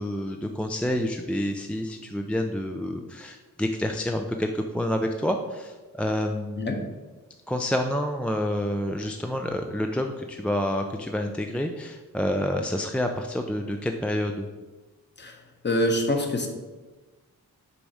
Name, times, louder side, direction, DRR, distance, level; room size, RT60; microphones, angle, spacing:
voice 1, 0.0-6.9 7.5-14.5, left 1 dB, 5° left, 3 dB, 0.4 m, -28 dB
voice 2, 15.6-16.5, left 1 dB, 30° left, 3 dB, 1.1 m, -25 dB
7.0 x 4.1 x 4.8 m, 1.2 s
wide cardioid pair, 115°, 34 cm